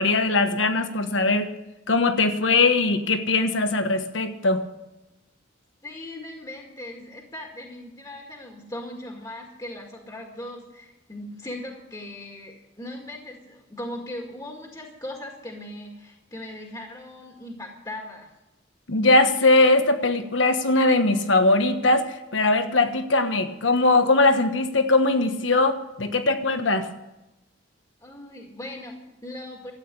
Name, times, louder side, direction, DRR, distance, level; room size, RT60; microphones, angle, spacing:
voice 1, 0.0-1.5 1.9-4.6 18.9-26.9, left 2 dB, 75° left, 8 dB, 1.3 m, -20 dB
voice 2, 5.8-18.3 28.0-29.7, left 1 dB, 20° left, 1 dB, 1.8 m, -39 dB
13.0 x 8.9 x 9.7 m, 0.97 s
head